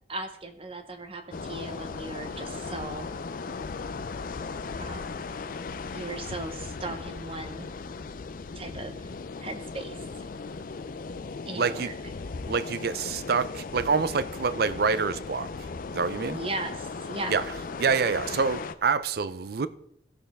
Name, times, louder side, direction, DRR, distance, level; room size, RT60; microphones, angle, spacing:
voice 1, 0.1-3.1 4.8-5.3 5.9-7.7 8.5-9.1 9.4-10.0 11.5-11.9 16.3-17.4, right 2 dB, 30° right, 0.8 m, -37 dB
sound 1, 1.3-18.7, left 4 dB, 50° left, 0.5 m, -37 dB
voice 2, 11.5-11.9 12.5-15.5 15.9-16.4 17.3-17.4 17.8-19.7, right 5 dB, 60° right, 0.5 m, -26 dB
15.5 x 6.7 x 3.5 m
head